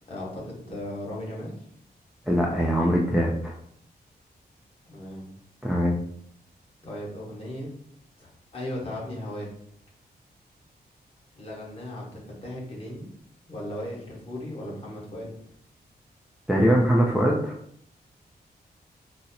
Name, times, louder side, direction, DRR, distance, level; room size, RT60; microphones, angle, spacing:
voice 1, 0.1-1.6 4.9-5.3 6.8-7.7 8.2-9.5 11.3-13.1 13.5-15.3, left 1 dB, 35° left, -4 dB, 1.2 m, -36 dB
voice 2, 2.3-3.5 5.6-6.0 16.5-17.5, equal, ahead, -3 dB, 0.4 m, -22 dB
3.9 x 2.0 x 4.0 m, 0.66 s
wide cardioid pair, 170°, 17 cm